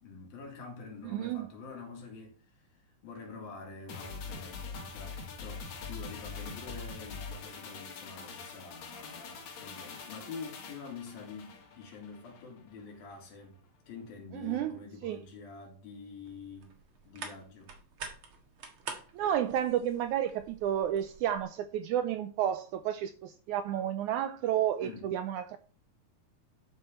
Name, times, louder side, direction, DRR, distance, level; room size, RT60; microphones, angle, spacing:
voice 1, 0.0-2.4 3.0-13.6 13.9-16.8 17.1-17.7 24.8-25.1, left 4 dB, 90° left, 4.2 m, -46 dB
voice 2, 1.0-1.5 14.3-15.2 19.1-25.6, right 10 dB, 80° right, 1.8 m, -31 dB
sound 1, 3.9-12.5 12.8-12.9, left 5 dB, 75° left, 3.5 m, -44 dB
sound 2, 16.3-21.4, right 5 dB, 50° right, 1.8 m, -47 dB
11.5 x 5.8 x 4.4 m
omnidirectional pair, 4.0 m